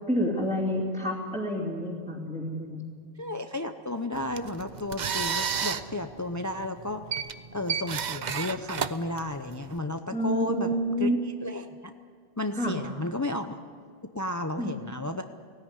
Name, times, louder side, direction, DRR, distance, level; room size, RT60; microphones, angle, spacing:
voice 1, 0.1-2.8 10.1-11.2 12.5-12.8 14.6-14.7, equal, 5° right, -6 dB, 2.7 m, -28 dB
voice 2, 3.2-7.0 7.5-11.9 12.4-13.6 14.0-15.2, left 2 dB, 20° left, 7 dB, 0.6 m, -33 dB
sound 1, 4.1-9.8, right 7 dB, 50° right, 0.8 m, -32 dB
18.5 x 17.0 x 9.8 m, 2.1 s
omnidirectional pair, 1.1 m